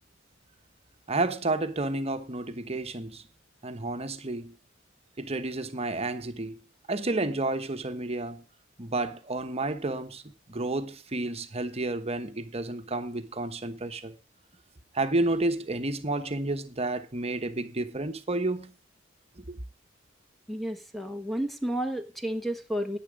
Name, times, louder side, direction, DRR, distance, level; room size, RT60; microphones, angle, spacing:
voice 1, 1.1-3.2 3.6-4.6 5.2-6.5 6.9-8.4 8.8-10.2 10.5-14.1 14.9-18.7 19.4-19.6, right 2 dB, 30° right, 1.2 m, -31 dB
voice 2, 20.5-23.0, equal, ahead, 1.2 m, -31 dB
10.5 x 9.8 x 5.1 m
head